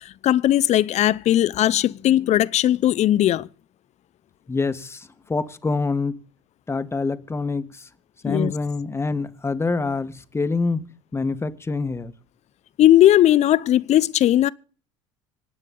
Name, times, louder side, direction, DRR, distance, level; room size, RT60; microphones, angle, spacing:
voice 1, 0.2-3.5 8.2-8.5 12.8-14.5, left 13 dB, 45° left, 0.7 m, -18 dB
voice 2, 4.5-6.2 6.7-7.9 8.2-10.9 11.1-12.1, left 3 dB, 15° left, 1.5 m, -26 dB
26.0 x 9.0 x 3.9 m
hypercardioid pair, 75°, 15 cm